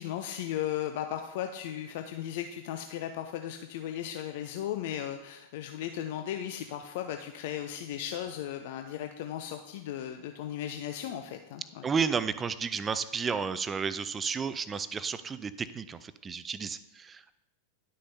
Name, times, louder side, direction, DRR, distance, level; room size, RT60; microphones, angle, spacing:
voice 1, 0.0-11.9, left 10 dB, 50° left, 7 dB, 0.5 m, -36 dB
voice 2, 11.8-17.4, right 6 dB, 20° right, 14 dB, 0.4 m, -32 dB
11.0 x 6.4 x 2.7 m, 0.94 s
figure-of-eight pair, 90°, 0 cm